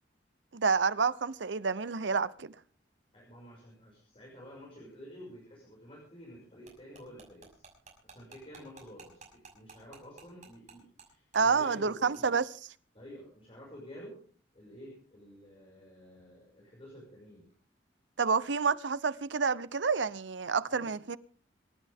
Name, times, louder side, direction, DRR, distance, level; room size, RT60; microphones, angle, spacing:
voice 1, 0.5-2.5 11.3-12.5 18.2-21.2, right 5 dB, 80° right, 0.8 m, -29 dB
voice 2, 3.1-7.7 8.0-12.3 12.9-14.2 14.5-17.5 20.7-20.9, equal, 35° left, 6.3 m, -50 dB
sound 1, 6.7-11.1 11.3-11.4 11.7-11.9 12.1-12.2, right 5 dB, 45° right, 6.1 m, -53 dB
27.0 x 12.0 x 3.6 m
head